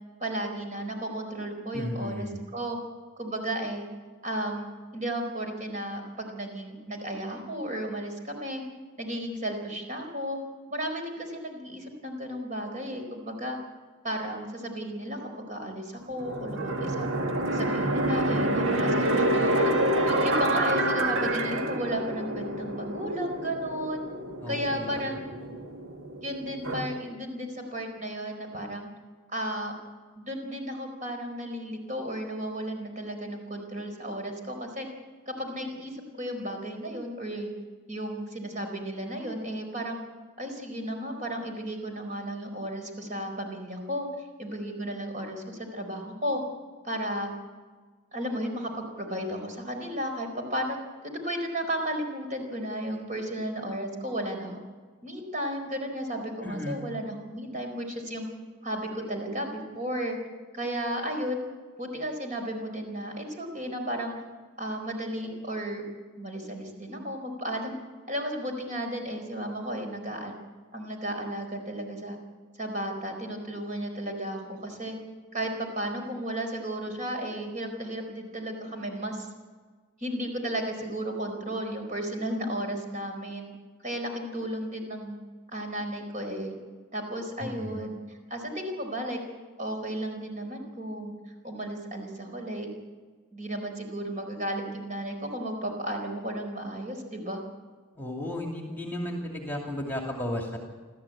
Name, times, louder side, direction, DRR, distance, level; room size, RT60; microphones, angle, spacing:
voice 1, 0.2-2.8 3.2-3.9 4.2-8.6 9.0-10.4 10.7-13.6 14.0-17.1 17.5-19.7 20.1-24.0 24.5-25.2 26.2-28.9 29.3-29.7 30.2-34.9 35.3-37.5 37.9-40.0 40.4-44.1 44.4-46.4 46.8-47.3 48.1-54.6 55.0-58.3 58.6-60.2 60.5-61.4 61.8-64.1 64.6-65.9 66.2-67.8 68.1-70.3 70.7-72.2 72.6-75.0 75.3-79.3 80.0-83.5 83.8-85.2 85.5-86.5 86.9-88.0 88.3-89.2 89.6-91.1 91.4-92.7 93.3-97.4, equal, 35° right, 3 dB, 4.5 m, -34 dB
voice 2, 1.7-2.4 24.4-24.9 25.3-25.5 56.4-56.8 87.4-87.8 98.0-100.6, left 1 dB, 10° left, 0 dB, 2.5 m, -34 dB
sound 1, 16.2-26.9, right 1 dB, 60° right, 1.9 m, -28 dB
29.0 x 13.5 x 8.7 m, 1.4 s
head